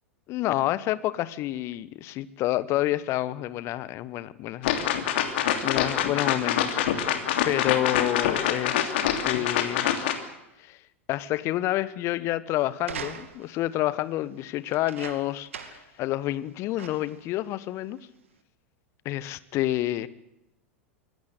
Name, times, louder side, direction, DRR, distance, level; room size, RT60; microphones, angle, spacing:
voice 1, 0.3-4.9 5.2-7.1 7.4-8.9 9.2-9.9 10.6-10.8 11.1-18.0 19.0-20.1, left 15 dB, 40° left, 18 dB, 1.2 m, -29 dB
sound 1, 4.6-10.2, left 10 dB, 55° left, 3.0 m, -25 dB
sound 2, 12.8-13.6 14.7-15.9 16.3-16.4 16.8-17.2 18.0-18.1, right 7 dB, 65° right, 2.3 m, -40 dB
24.5 x 17.5 x 8.4 m, 0.89 s
figure-of-eight pair, 90°, 7 cm